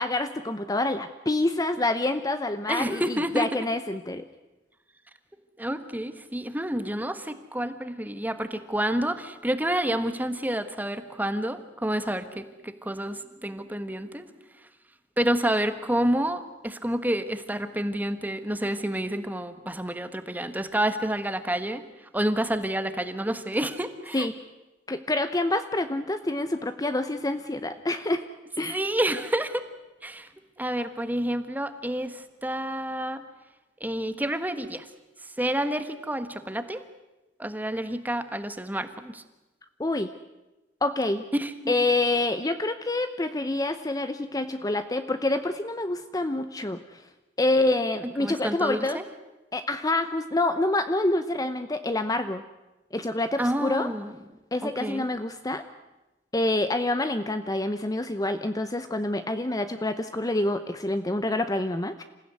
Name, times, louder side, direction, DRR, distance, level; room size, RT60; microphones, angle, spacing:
voice 1, 0.0-4.3 24.1-24.3 24.9-28.2 28.6-28.8 39.8-40.1 40.8-41.2 41.7-47.0 47.4-49.0 49.5-52.4 52.9-53.9 54.5-55.6 56.3-62.0, left 2 dB, 20° left, 10 dB, 0.8 m, -27 dB
voice 2, 2.7-3.5 5.6-14.3 15.2-24.3 28.7-29.7 30.0-30.3 30.6-33.2 33.8-34.9 35.4-36.8 37.4-39.2 41.3-41.7 48.2-49.0 53.4-54.1 54.6-55.0, right 1 dB, 10° right, 10 dB, 1.4 m, -29 dB
27.5 x 16.0 x 9.6 m, 1.0 s
head